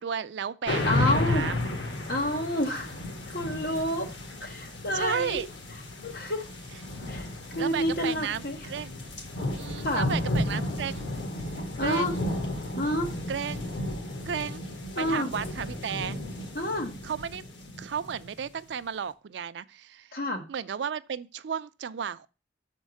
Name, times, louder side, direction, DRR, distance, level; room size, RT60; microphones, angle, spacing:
voice 1, 0.0-1.6 4.9-5.5 7.6-8.9 9.5-11.1 11.8-12.2 13.3-13.8 14.3-14.6 15.0-16.2 17.0-17.4 17.8-20.2 20.5-22.3, right 7 dB, 80° right, 0.4 m, -33 dB
sound 1, 0.6-18.5, left 1 dB, 90° left, 1.6 m, -33 dB
voice 2, 0.8-1.5 2.1-2.9 3.3-4.1 4.4-5.5 6.0-6.5 7.1-8.6 9.8-10.1 11.8-12.1 12.8-13.1 14.9-15.3 16.5-17.0 20.1-20.4, left 1 dB, 55° left, 1.3 m, -29 dB
6.4 x 4.5 x 6.2 m
head